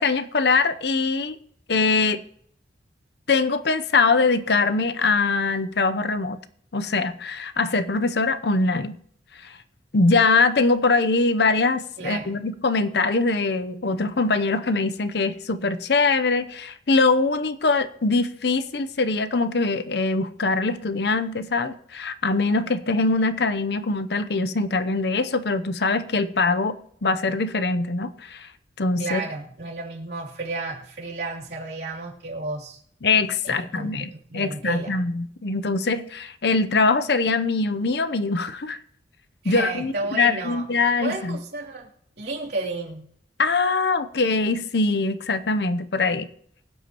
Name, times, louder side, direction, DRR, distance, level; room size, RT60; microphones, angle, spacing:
voice 1, 0.0-1.4 1.7-2.2 3.3-6.4 6.7-9.0 9.9-28.5 28.8-29.2 33.0-38.8 39.4-41.4 43.4-46.3, left 3 dB, 60° left, 0.7 m, -22 dB
voice 2, 12.0-12.3 29.0-32.8 33.4-35.0 39.4-40.7 41.0-41.9 42.2-43.0, right 3 dB, 60° right, 3.1 m, -32 dB
24.0 x 8.1 x 3.0 m
head